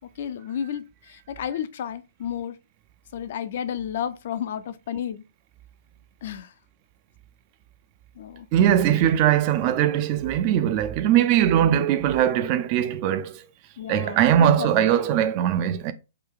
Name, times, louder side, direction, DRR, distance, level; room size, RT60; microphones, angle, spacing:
voice 1, 0.2-2.6 3.1-5.2 6.2-6.5 8.2-8.5 13.8-14.9, left 9 dB, 50° left, 0.3 m, -32 dB
voice 2, 8.5-13.4 13.9-15.9, right 10 dB, 35° right, 0.3 m, -20 dB
3.2 x 2.2 x 3.7 m
figure-of-eight pair, 115°, 0 cm